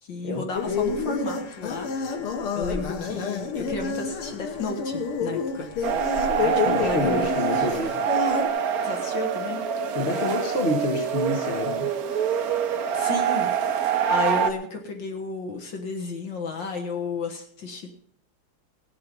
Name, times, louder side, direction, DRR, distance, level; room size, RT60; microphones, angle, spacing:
voice 1, 0.0-2.2 2.5-5.9 6.4-7.3 7.6-7.7 8.8-9.7 12.9-13.5 14.1-18.0, left 3 dB, 60° left, 3 dB, 2.1 m, -32 dB
sound 1, 0.5-8.5, left 5 dB, 85° left, 2.1 m, -29 dB
sound 2, 5.8-14.5, right 8 dB, 55° right, 1.1 m, -25 dB
voice 2, 6.6-8.0 9.9-11.9, left 2 dB, 35° left, 3 dB, 1.6 m, -28 dB
18.5 x 7.6 x 5.3 m, 0.63 s
omnidirectional pair, 2.4 m